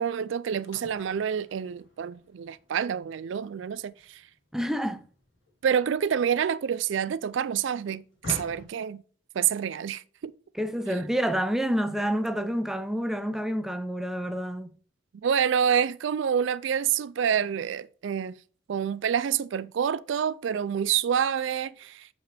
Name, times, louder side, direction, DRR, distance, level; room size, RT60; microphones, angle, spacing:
voice 1, 0.0-4.2 5.6-9.0 9.4-10.0 15.2-18.4 18.7-22.1, right 8 dB, 65° right, 0.4 m, -27 dB
sound 1, 0.6-7.1 7.4-8.7, left 2 dB, 65° left, 3.0 m, -44 dB
voice 2, 4.5-5.0 10.5-14.7, equal, ahead, 0.5 m, -28 dB
7.4 x 5.7 x 3.3 m
head